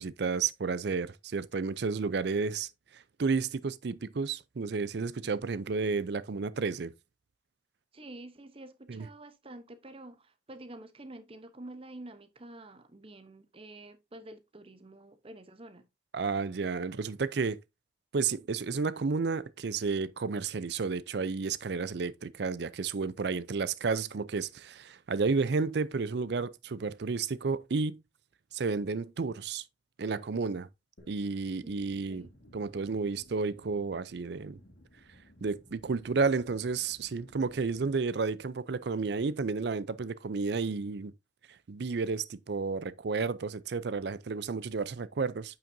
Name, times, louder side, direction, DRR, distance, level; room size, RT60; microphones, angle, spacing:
voice 1, 0.0-6.9 8.9-9.1 16.1-17.6 18.1-28.0 28.5-29.6 30.0-30.7 31.1-32.2 32.5-34.6 35.4-41.1 41.7-45.6, right 4 dB, 60° right, 0.5 m, -32 dB
voice 2, 7.9-15.9 31.6-31.7 32.1-32.3, right 1 dB, 30° right, 0.8 m, -48 dB
sound 1, 31.0-37.9, equal, 60° left, 2.1 m, -58 dB
8.8 x 5.8 x 2.6 m
head